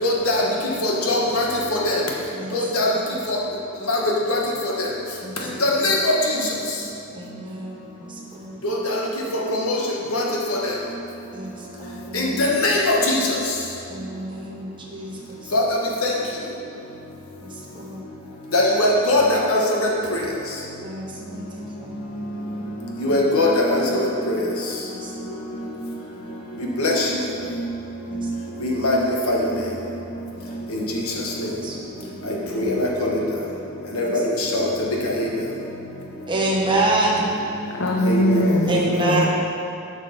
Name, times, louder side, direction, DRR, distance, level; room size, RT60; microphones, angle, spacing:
voice 1, 0.0-0.4 0.8-1.4 1.7-1.9 2.5-2.9 3.3-3.4 3.9-4.0 4.3-4.4 5.6-6.0 8.6-8.7 9.7-9.8 10.1-10.2 12.1-13.1 15.5-15.6 18.5-19.6 23.0-23.8 24.3-24.4 26.8-26.9 28.6-29.0 29.3-29.4 32.6-32.9 34.0-34.1 34.5-34.7 38.0-38.2, left 2 dB, 90° left, -2 dB, 1.5 m, -20 dB
voice 2, 2.3-3.2 5.2-5.9 7.1-8.6 11.3-12.6 13.9-15.5 17.4-18.0 20.8-22.0 24.9-25.5 28.1-28.7 31.6-32.2 32.5-33.0 34.0-34.2 36.3-37.3 38.7-39.3, right 2 dB, 25° right, -3 dB, 1.3 m, -28 dB
voice 3, 37.7-39.3, equal, 60° left, -1 dB, 0.7 m, -21 dB
7.4 x 6.4 x 5.3 m, 2.6 s
head